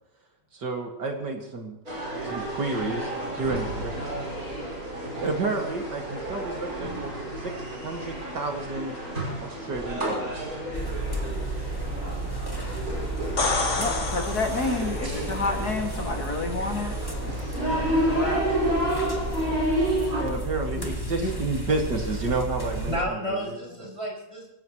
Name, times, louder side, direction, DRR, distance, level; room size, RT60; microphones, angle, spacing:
voice 1, 0.5-1.8 2.2-3.9 5.2-9.0 9.4-10.4 20.2-23.4, right 3 dB, 70° right, 3 dB, 2.8 m, -31 dB
sound 1, 1.9-20.2, right 1 dB, 50° right, 5.9 m, -31 dB
sound 2, 10.7-23.0, right 1 dB, 10° left, 2.0 m, -33 dB
sound 3, 13.2-15.1 18.8-18.9, left 3 dB, 40° left, 2.1 m, -28 dB
voice 2, 13.7-17.0 17.2-17.6 18.1-18.4, left 3 dB, 55° left, 3 dB, 2.8 m, -30 dB
voice 3, 20.0-20.4 20.7-20.9 21.2-21.4 22.9-24.5, equal, 15° right, -3 dB, 6.7 m, -32 dB
25.0 x 16.0 x 3.1 m, 0.97 s
omnidirectional pair, 2.0 m